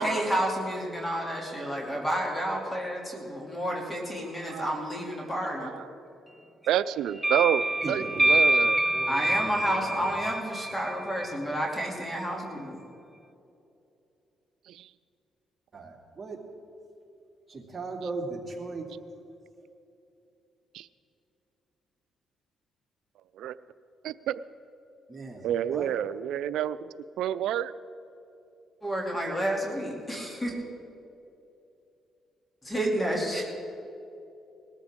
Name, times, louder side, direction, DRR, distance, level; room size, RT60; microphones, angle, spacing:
voice 1, 0.0-5.7 9.1-12.8 28.8-30.5 32.6-33.5, equal, 20° left, -1 dB, 2.8 m, -30 dB
voice 2, 4.5-4.9 5.6-5.9 6.7-8.8 14.7-14.9 20.7-20.9 23.4-23.6 24.0-24.4 25.4-26.8 27.2-27.7, right 11 dB, 80° right, 15 dB, 0.4 m, -29 dB
sound 1, 7.2-11.7, right 1 dB, 5° right, 0.4 m, -26 dB
voice 3, 7.8-8.4 8.9-10.1 15.7-16.4 17.5-18.9 25.1-25.9, right 3 dB, 25° right, 0 dB, 2.5 m, -38 dB
20.0 x 14.0 x 3.7 m, 2.8 s
cardioid pair, 90°, 0 cm